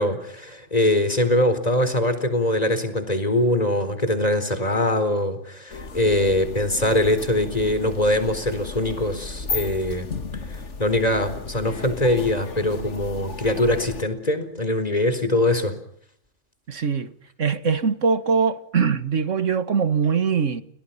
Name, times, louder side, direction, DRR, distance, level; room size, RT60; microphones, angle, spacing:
voice 1, 0.0-10.1 10.5-15.7, left 1 dB, 30° left, 4.4 m, -22 dB
sound 1, 5.7-14.0, left 4 dB, 65° left, 2.2 m, -34 dB
voice 2, 16.7-17.1 17.4-20.6, right 6 dB, 70° right, 2.1 m, -22 dB
30.0 x 29.5 x 5.9 m
omnidirectional pair, 1.3 m